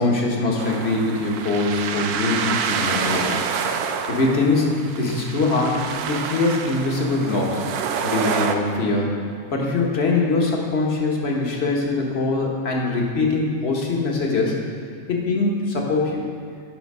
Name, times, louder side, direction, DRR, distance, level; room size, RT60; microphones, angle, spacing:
voice 1, 0.0-4.7 4.9-7.7 8.0-14.6 15.1-16.2, left 3 dB, 45° left, -1 dB, 1.4 m, -23 dB
sound 1, 0.6-8.5, right 6 dB, 85° right, 1.1 m, -27 dB
9.5 x 5.6 x 5.5 m, 2.1 s
omnidirectional pair, 1.6 m